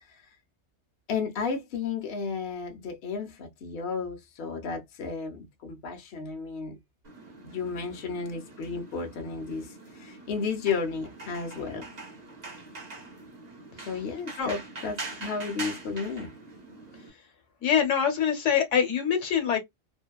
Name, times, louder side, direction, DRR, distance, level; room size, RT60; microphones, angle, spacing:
voice 1, 1.1-6.8 7.4-11.9 13.8-16.4, left 5 dB, 65° left, 0.9 m, -33 dB
sound 1, 7.0-17.1, right 3 dB, 40° right, 0.8 m, -43 dB
voice 2, 17.6-19.6, left 8 dB, 90° left, 1.2 m, -24 dB
2.6 x 2.2 x 2.3 m
omnidirectional pair, 1.2 m